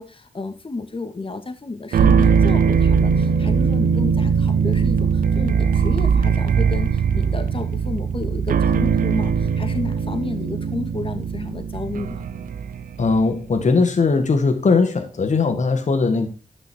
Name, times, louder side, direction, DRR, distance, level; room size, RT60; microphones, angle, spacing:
voice 1, 0.0-12.2, left 3 dB, 40° left, 2.1 m, -31 dB
sound 1, 1.9-13.3, right 6 dB, 80° right, 0.7 m, -20 dB
voice 2, 13.0-16.3, left 4 dB, 60° left, 1.7 m, -19 dB
11.5 x 6.2 x 4.6 m
cardioid pair, 55°, 14 cm